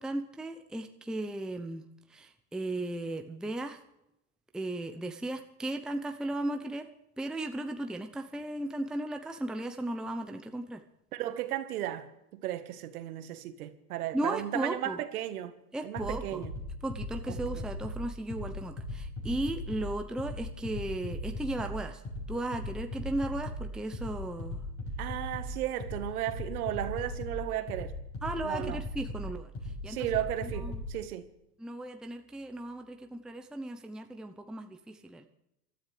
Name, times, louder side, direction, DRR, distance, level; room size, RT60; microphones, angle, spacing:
voice 1, 0.0-1.8 2.1-3.8 4.5-6.9 7.2-10.8 14.1-15.0 15.7-16.4 16.8-22.0 22.3-24.6 28.2-29.5 29.8-30.0 30.6-30.8 31.6-35.3, right 1 dB, ahead, 0.8 m, -36 dB
voice 2, 11.1-15.6 15.8-16.5 17.3-17.7 25.0-27.9 28.4-28.8 29.9-31.3, right 12 dB, 70° right, 1.6 m, -35 dB
sound 1, 16.0-31.0, left 1 dB, 30° left, 6.8 m, -38 dB
27.0 x 13.0 x 3.4 m
hypercardioid pair, 95°, 46 cm